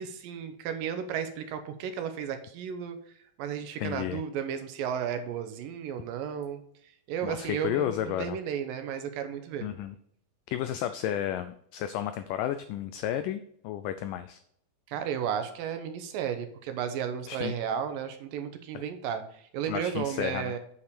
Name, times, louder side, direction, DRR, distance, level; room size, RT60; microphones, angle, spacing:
voice 1, 0.0-3.0 3.4-6.6 7.1-9.7 14.9-20.6, right 8 dB, 75° right, 8 dB, 2.3 m, -33 dB
voice 2, 3.8-4.2 7.2-8.4 9.6-10.0 10.5-14.4 17.3-17.5 18.7-18.8 19.7-20.5, left 11 dB, 90° left, 11 dB, 1.9 m, -32 dB
8.3 x 5.6 x 5.0 m, 0.69 s
omnidirectional pair, 4.3 m